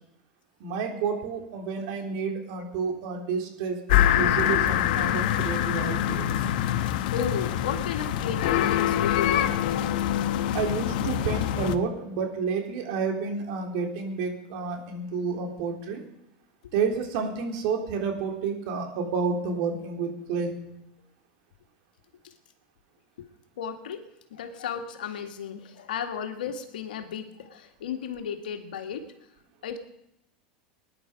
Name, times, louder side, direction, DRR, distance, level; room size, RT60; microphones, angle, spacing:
voice 1, 0.6-6.3 10.5-16.0 16.7-20.5, right 5 dB, 65° right, 3 dB, 3.7 m, -30 dB
sound 1, 3.9-11.7, left 11 dB, 70° left, 1.1 m, -25 dB
voice 2, 6.8-9.9 22.2-22.3 23.2-23.3 23.6-24.0 24.3-29.1 29.6-29.8, left 7 dB, 85° left, 6 dB, 2.1 m, -34 dB
19.5 x 11.0 x 5.2 m, 0.79 s
hypercardioid pair, 110°, 5 cm